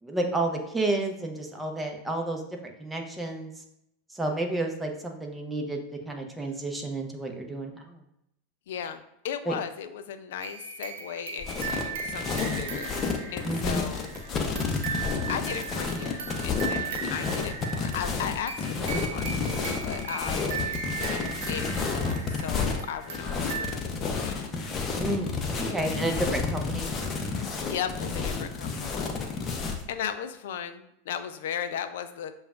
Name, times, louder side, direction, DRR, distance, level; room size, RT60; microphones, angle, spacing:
voice 1, 0.0-3.6 4.1-8.0 9.5-9.6 13.4-13.9 25.0-26.9, right 2 dB, 10° right, 2 dB, 0.7 m, -31 dB
voice 2, 8.7-13.0 13.3-14.1 15.3-24.5 25.7-26.3 27.7-29.6 29.9-32.3, left 9 dB, 65° left, 9 dB, 0.4 m, -37 dB
sound 1, 10.4-23.7, right 6 dB, 65° right, 0.5 m, -37 dB
sound 2, 11.4-29.8, left 4 dB, 30° left, 0.7 m, -30 dB
6.8 x 2.3 x 2.4 m, 0.79 s
hypercardioid pair, 90°, 0 cm